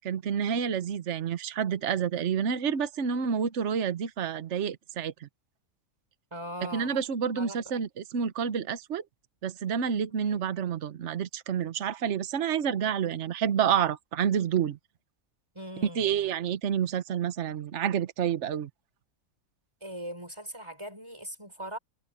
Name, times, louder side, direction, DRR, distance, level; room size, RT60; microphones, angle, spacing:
voice 1, 0.0-5.3 6.7-9.0 9.4-14.8 15.9-18.7, right 8 dB, 55° right, 1.2 m, -29 dB
voice 2, 6.3-6.9 7.3-7.6 10.3-10.4 15.5-16.0 19.8-21.8, equal, 20° right, 4.8 m, -40 dB
omnidirectional pair, 1.5 m